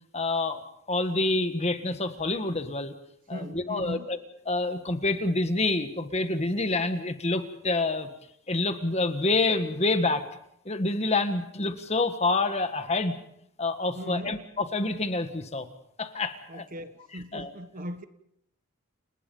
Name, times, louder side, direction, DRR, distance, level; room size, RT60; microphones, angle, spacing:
voice 1, 0.1-0.6 0.9-2.9 3.3-4.2 4.5-8.1 8.5-10.3 10.6-13.2 13.6-15.7 16.0-16.6 17.3-17.5, left 2 dB, 30° left, 1.6 m, -27 dB
voice 2, 3.3-4.1 13.9-14.4 16.5-18.0, equal, 40° right, 1.3 m, -38 dB
29.5 x 19.5 x 5.5 m
head